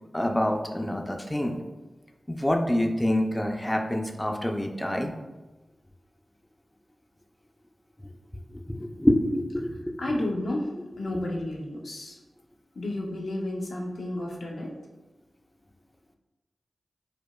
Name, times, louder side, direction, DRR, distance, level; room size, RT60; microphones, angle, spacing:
voice 1, 0.1-1.6 2.3-5.1 8.5-10.0, left 1 dB, 15° left, 2 dB, 0.4 m, -26 dB
voice 2, 10.0-10.7 11.0-12.2 12.7-14.7, left 1 dB, 80° left, -2 dB, 0.6 m, -31 dB
4.9 x 2.1 x 2.2 m, 1.1 s
cardioid pair, 40°, 0 cm